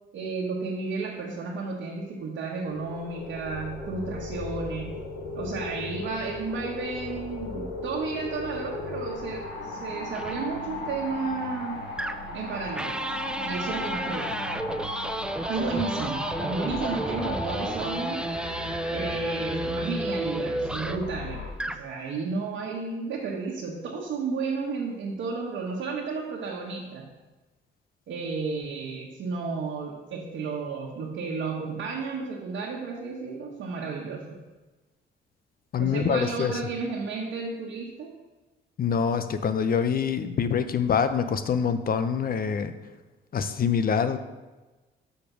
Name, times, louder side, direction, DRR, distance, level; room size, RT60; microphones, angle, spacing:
voice 1, 0.1-4.9 5.3-11.8 12.3-13.0 13.4-14.3 15.5-18.3 18.9-27.1 28.1-34.4 35.8-38.1, right 4 dB, 70° right, -4 dB, 1.2 m, -32 dB
sound 1, 2.6-21.5, left 2 dB, 90° left, 1.4 m, -36 dB
sound 2, 10.1-10.4 12.0-12.4 12.8-21.1 21.5-21.9, right 1 dB, 5° right, 0.4 m, -32 dB
voice 2, 35.7-36.5 38.8-42.7 43.3-44.2, left 7 dB, 45° left, 10 dB, 0.7 m, -25 dB
6.8 x 5.1 x 6.1 m, 1.2 s
cardioid pair, 90°, 20 cm